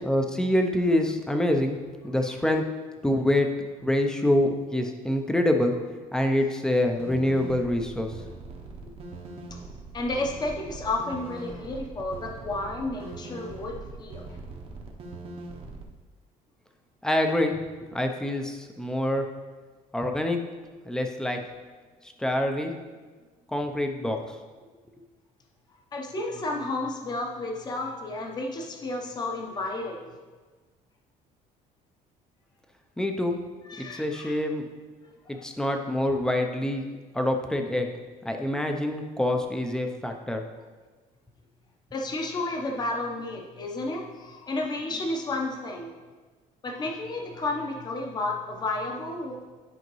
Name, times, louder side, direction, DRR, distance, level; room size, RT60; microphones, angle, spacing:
voice 1, 0.0-1.8 2.0-2.6 3.0-5.7 6.1-8.1 17.0-17.5 17.9-19.2 19.9-20.4 20.8-21.4 22.2-22.7 23.5-24.2 33.0-33.4 33.8-34.7 35.3-36.9 37.1-37.9 38.2-40.4, left 1 dB, 5° left, 4 dB, 0.6 m, -26 dB
sound 1, 7.0-15.8, right 3 dB, 40° right, 0.8 m, -41 dB
voice 2, 9.9-14.2 25.9-30.1 33.7-34.4 35.3-35.4 41.9-46.0 46.6-49.4, left 2 dB, 25° left, 1 dB, 0.9 m, -32 dB
10.5 x 5.0 x 3.1 m, 1.4 s
cardioid pair, 155°, 15 cm